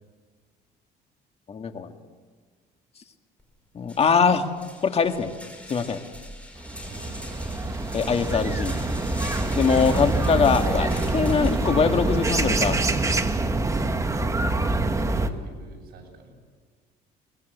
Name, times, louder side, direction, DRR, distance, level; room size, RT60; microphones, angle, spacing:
voice 1, 1.5-1.9 3.7-4.5 4.8-5.3 5.7-6.0 7.9-8.7 9.5-12.8, left 5 dB, 35° left, 6 dB, 2.0 m, -22 dB
sound 1, 3.4-3.5 3.8-13.4, left 1 dB, 5° left, 5.1 m, -43 dB
sound 2, 6.6-15.3, right 2 dB, 20° right, 1.5 m, -25 dB
voice 2, 6.9-7.5 9.6-9.8 14.3-16.3, right 3 dB, 65° right, 1 dB, 7.3 m, -47 dB
22.5 x 21.0 x 8.1 m, 1.5 s
cardioid pair, 110°, 17 cm